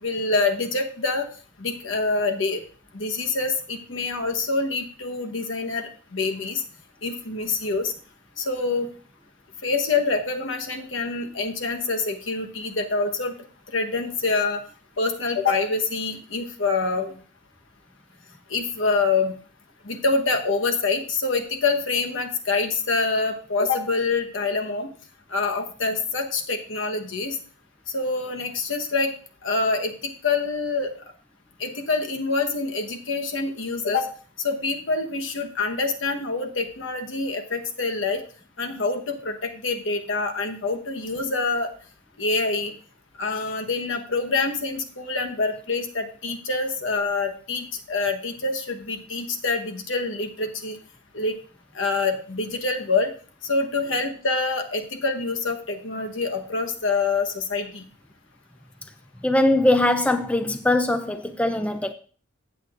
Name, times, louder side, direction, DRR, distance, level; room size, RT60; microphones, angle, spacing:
voice 1, 0.0-1.3 1.6-2.6 2.9-6.6 7.0-7.9 8.4-8.9 9.6-13.3 13.7-14.6 15.0-17.2 18.5-19.3 19.8-24.9 25.3-27.4 27.9-29.1 29.4-29.9 30.2-30.9 31.6-34.1 34.4-38.2 38.6-41.7 42.2-42.7 43.2-50.8 51.1-51.3 51.7-53.1 53.4-57.8, left 3 dB, 70° left, 1.1 m, -26 dB
voice 2, 59.2-61.9, left 1 dB, 5° left, 0.3 m, -21 dB
14.5 x 8.2 x 2.5 m
head